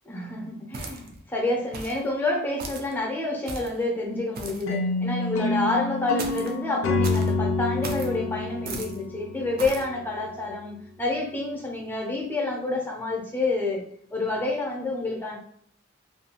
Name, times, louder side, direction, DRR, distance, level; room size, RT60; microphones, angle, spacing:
voice 1, 0.1-13.8 14.1-15.4, left 2 dB, 10° left, 0 dB, 0.5 m, -28 dB
sound 1, 0.7-1.2 1.7-2.0 2.6-2.9 3.5-3.8 4.3-4.7 6.2-6.5 7.0-7.3 7.8-8.1 8.7-9.0 9.6-9.9, right 3 dB, 45° right, 0.4 m, -36 dB
sound 2, 4.7-9.8, left 2 dB, 85° left, 0.4 m, -27 dB
2.5 x 2.3 x 2.8 m, 0.63 s
head